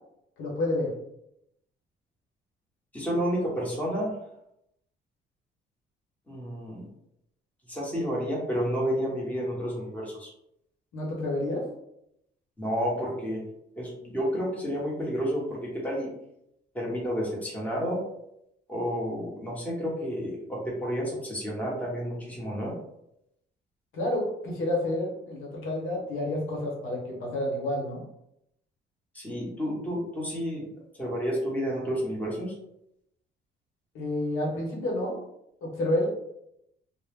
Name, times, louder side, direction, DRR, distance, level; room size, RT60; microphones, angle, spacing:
voice 1, 0.4-0.9 10.9-11.6 23.9-28.0 33.9-35.2 35.6-36.1, left 1 dB, 90° left, -2 dB, 0.9 m, -29 dB
voice 2, 2.9-4.2 6.3-6.9 7.7-10.3 12.6-13.4 13.8-16.1 16.7-18.0 18.7-22.7 29.1-30.6 31.0-32.5, equal, 5° left, -4 dB, 1.0 m, -30 dB
2.1 x 2.0 x 3.4 m, 0.79 s
cardioid pair, 90°, 20 cm